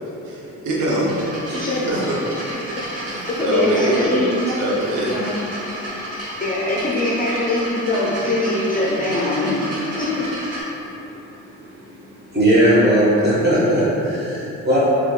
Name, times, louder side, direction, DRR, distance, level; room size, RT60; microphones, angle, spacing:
voice 1, 0.2-1.5 1.8-2.2 2.5-2.6 3.0-4.2 4.6-5.1, right 1 dB, 85° right, -4 dB, 0.7 m, -23 dB
sound 1, 1.0-10.6, equal, 55° right, 1.1 m, -32 dB
voice 2, 3.4-4.3 5.1-5.3 6.4-9.6 9.9-10.2, left 2 dB, 30° left, -5 dB, 0.4 m, -22 dB
voice 3, 12.3-14.8, right 1 dB, 35° right, -9 dB, 1.4 m, -17 dB
3.4 x 2.9 x 2.3 m, 3.0 s
cardioid pair, 90°, 30 cm